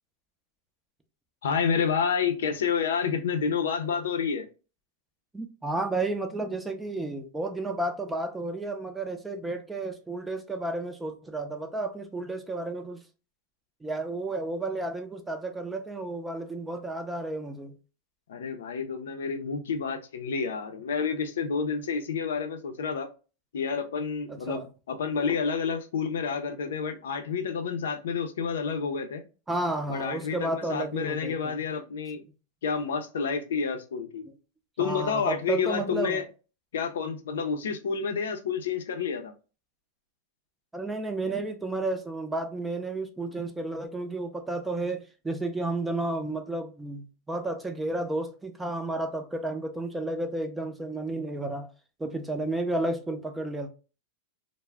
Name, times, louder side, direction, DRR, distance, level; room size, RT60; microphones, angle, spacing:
voice 1, 1.4-4.5 18.3-23.1 23.5-29.2 29.9-32.2 32.6-34.2 34.8-36.2 36.7-39.3, left 6 dB, 85° left, 0.5 m, -29 dB
voice 2, 5.3-13.0 13.8-17.7 24.3-24.7 29.5-31.6 34.8-36.2 40.7-51.7 52.0-53.7, right 2 dB, 10° right, 0.4 m, -32 dB
2.3 x 2.0 x 3.4 m
hypercardioid pair, 120°, 0 cm